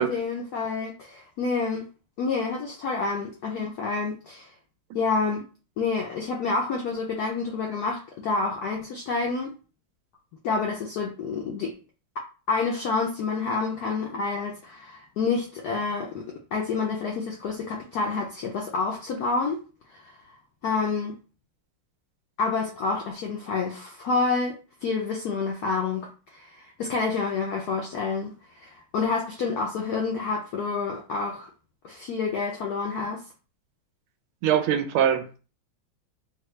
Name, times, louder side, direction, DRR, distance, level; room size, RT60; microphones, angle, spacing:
voice 1, 0.0-1.9 2.2-4.5 4.9-5.5 5.8-9.5 10.4-11.7 12.5-19.6 19.9-20.1 20.6-21.2 22.4-31.5 31.8-33.2, left 4 dB, 80° left, 0.8 m, -28 dB
voice 2, 34.4-35.4, right 9 dB, 85° right, 1.4 m, -23 dB
3.9 x 2.2 x 3.1 m
omnidirectional pair, 2.3 m